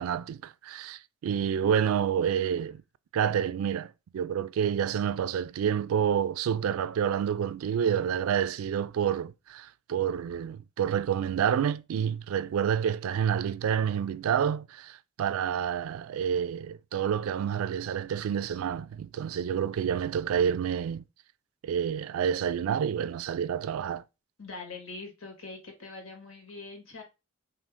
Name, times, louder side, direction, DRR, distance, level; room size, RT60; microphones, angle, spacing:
voice 1, 0.0-2.8 3.1-21.0 21.6-24.0, right 8 dB, 85° right, 0.3 m, -28 dB
voice 2, 24.4-27.0, left 3 dB, 85° left, 1.5 m, -43 dB
3.7 x 2.8 x 3.5 m
head